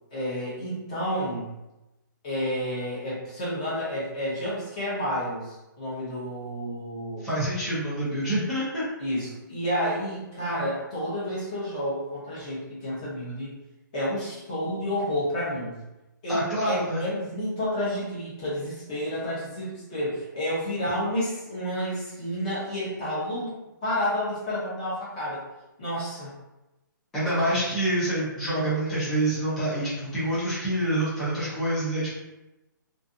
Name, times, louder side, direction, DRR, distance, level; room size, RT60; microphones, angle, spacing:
voice 1, 0.1-1.5 2.2-7.3 9.0-13.5 13.9-15.8 16.2-25.4 25.8-26.3, equal, 20° left, -8 dB, 0.7 m, -30 dB
voice 2, 7.2-8.8 16.3-17.1 27.1-32.1, right 1 dB, 5° left, -11 dB, 0.4 m, -26 dB
2.5 x 2.4 x 2.5 m, 1.0 s
hypercardioid pair, 175°, 11 cm